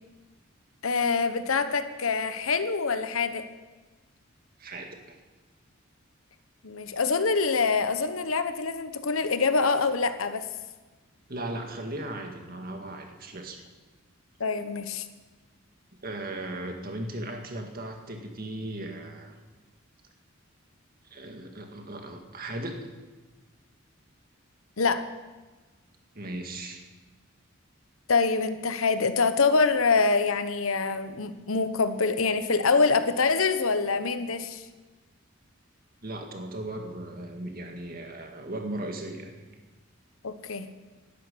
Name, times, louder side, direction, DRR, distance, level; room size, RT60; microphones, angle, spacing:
voice 1, 0.8-3.4 6.6-10.5 14.4-15.0 24.8-25.0 28.1-34.6 40.2-40.7, left 4 dB, 80° left, 10 dB, 1.1 m, -25 dB
voice 2, 4.6-5.2 11.3-13.6 16.0-19.4 21.1-22.8 26.1-26.9 36.0-39.3, right 1 dB, 45° right, 3 dB, 1.9 m, -37 dB
12.0 x 10.5 x 8.5 m, 1.3 s
head